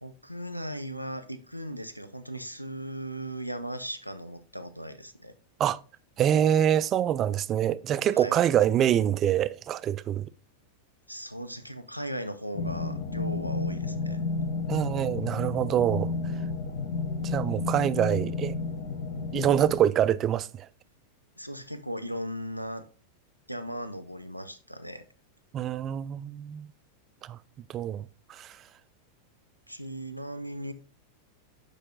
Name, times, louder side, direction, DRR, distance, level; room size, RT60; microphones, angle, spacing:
voice 1, 0.0-5.3 8.1-8.4 11.1-14.2 21.4-22.9 23.5-25.0 29.7-30.7, equal, 90° left, 0.6 m, -37 dB
voice 2, 6.2-10.3 14.7-16.1 17.2-18.5 19.3-20.5 25.5-26.7 27.2-27.4 27.7-28.5, right 10 dB, 30° right, 0.3 m, -25 dB
sound 1, 12.5-19.8, left 3 dB, 60° left, 1.0 m, -32 dB
6.4 x 4.9 x 3.7 m
figure-of-eight pair, 90°, 0 cm